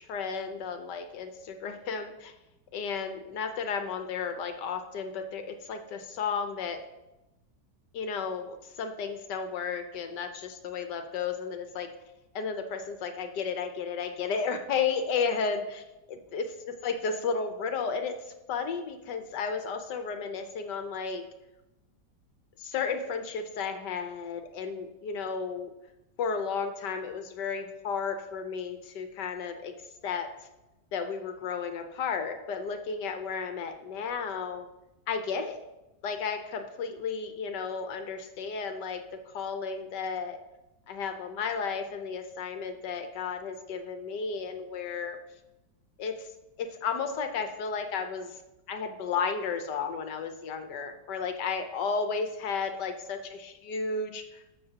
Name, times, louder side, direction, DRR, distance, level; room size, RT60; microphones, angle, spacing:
voice 1, 0.0-2.3 2.7-6.8 7.9-11.9 12.3-15.8 16.1-21.2 22.6-25.7 26.2-29.7 30.0-30.3 30.9-34.7 35.1-35.7 36.0-40.4 40.9-45.2 46.0-46.3 46.6-48.3 48.7-54.4, left 5 dB, 75° left, 7 dB, 1.4 m, -33 dB
13.5 x 6.4 x 2.9 m, 0.96 s
omnidirectional pair, 1.9 m